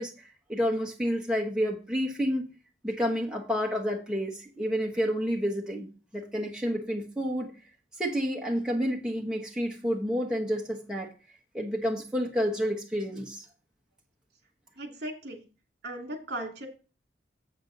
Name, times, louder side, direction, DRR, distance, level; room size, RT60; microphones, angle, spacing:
voice 1, 0.0-2.5 2.8-5.9 6.1-7.5 8.0-11.1 11.5-13.4, equal, 5° right, -2 dB, 1.1 m, -29 dB
voice 2, 14.8-15.4 15.8-16.7, right 1 dB, 60° right, 3 dB, 2.5 m, -37 dB
7.9 x 7.5 x 3.9 m, 0.34 s
head